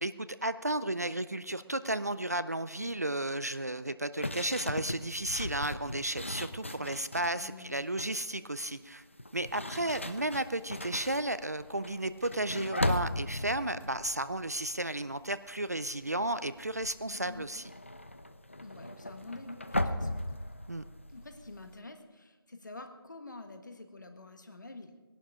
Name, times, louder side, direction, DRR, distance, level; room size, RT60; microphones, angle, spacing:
voice 1, 0.0-9.0 9.3-17.6 20.7-20.8, right 1 dB, 40° right, 13 dB, 0.4 m, -33 dB
sound 1, 4.2-7.4 7.8-8.2 9.1-15.4 15.6-16.0 16.3-21.8, left 1 dB, 30° left, 0.4 m, -38 dB
voice 2, 7.3-8.0 9.7-10.0 17.1-17.5 18.6-20.2 21.1-25.0, left 2 dB, 45° left, 7 dB, 1.5 m, -47 dB
19.0 x 11.5 x 4.8 m, 1.3 s
figure-of-eight pair, 180°, 14 cm